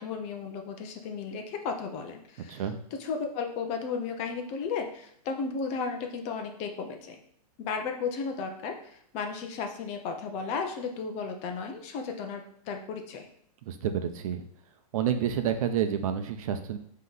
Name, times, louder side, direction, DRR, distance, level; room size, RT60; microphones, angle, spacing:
voice 1, 0.0-2.6 2.9-7.2 7.6-13.3, left 5 dB, 35° left, 4 dB, 0.9 m, -34 dB
voice 2, 13.7-14.5 14.9-16.8, right 9 dB, 60° right, 8 dB, 0.8 m, -29 dB
7.4 x 3.2 x 4.0 m, 0.68 s
hypercardioid pair, 140°, 20 cm